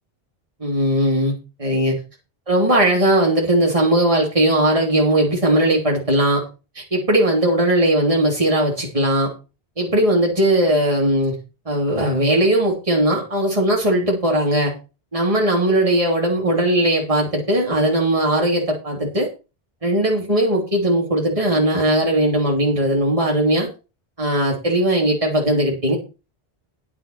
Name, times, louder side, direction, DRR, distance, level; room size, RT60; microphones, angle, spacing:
voice 1, 0.6-1.9 2.5-6.4 6.7-9.3 9.8-11.3 11.6-14.7 15.1-19.3 19.8-23.7 24.2-26.0, right 1 dB, 35° right, -2 dB, 3.2 m, -18 dB
10.5 x 8.5 x 4.5 m, 0.30 s
omnidirectional pair, 1.0 m